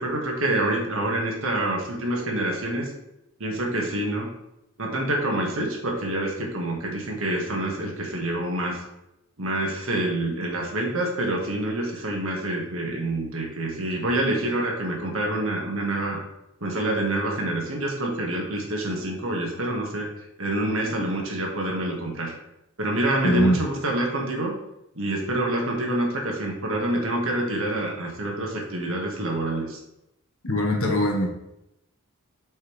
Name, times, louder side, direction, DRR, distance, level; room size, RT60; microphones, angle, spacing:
voice 1, 0.0-2.9 3.4-4.3 4.8-8.8 9.4-16.2 16.6-20.1 20.4-22.3 22.8-24.6 25.0-29.8, right 1 dB, 65° right, 0 dB, 1.9 m, -27 dB
voice 2, 23.2-23.6 30.4-31.3, equal, 65° left, 1 dB, 1.6 m, -21 dB
8.4 x 5.4 x 3.5 m, 0.85 s
head